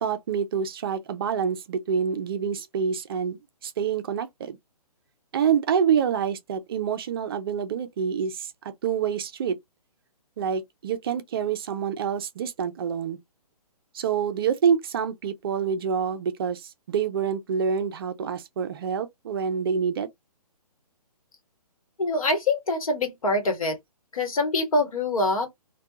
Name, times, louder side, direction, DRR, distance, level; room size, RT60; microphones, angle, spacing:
voice 1, 0.0-4.6 5.3-8.5 8.8-9.6 10.4-13.2 13.9-20.1, right 7 dB, 35° right, 0.5 m, -27 dB
voice 2, 22.0-23.8 24.1-25.5, left 2 dB, 60° left, 1.1 m, -24 dB
2.3 x 2.2 x 2.7 m
figure-of-eight pair, 135°, 20 cm